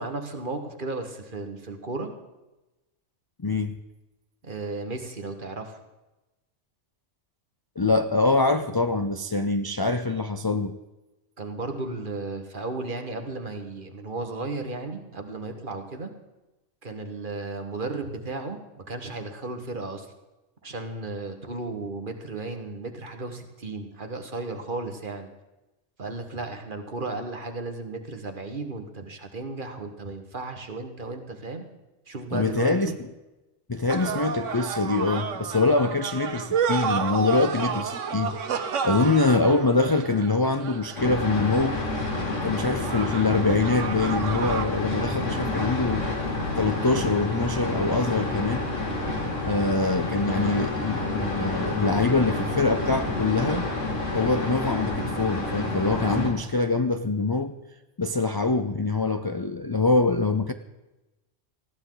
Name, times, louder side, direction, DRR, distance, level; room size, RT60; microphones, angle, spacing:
voice 1, 0.0-2.1 4.4-5.8 11.4-16.1 16.8-20.1 20.6-25.3 26.0-31.6 32.1-33.0, right 3 dB, 45° right, 5 dB, 1.6 m, -34 dB
voice 2, 3.4-3.8 7.8-10.8 32.3-32.9 33.7-41.8 42.4-46.1 46.6-48.7 49.5-53.7 54.1-57.6 58.0-60.5, left 3 dB, 30° left, 8 dB, 0.4 m, -24 dB
sound 1, 33.9-41.2 42.8-44.7, right 6 dB, 85° right, 1.3 m, -30 dB
sound 2, 41.0-56.3, left 2 dB, 90° left, 2.9 m, -29 dB
19.5 x 15.0 x 3.9 m, 1.0 s
omnidirectional pair, 1.2 m